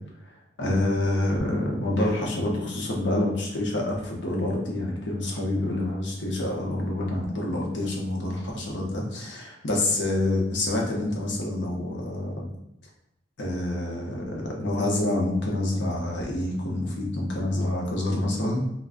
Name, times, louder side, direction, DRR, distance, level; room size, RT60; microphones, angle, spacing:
voice 1, 0.6-12.5 13.4-18.6, left 1 dB, 75° left, -2 dB, 0.8 m, -27 dB
3.5 x 2.2 x 2.4 m, 0.82 s
head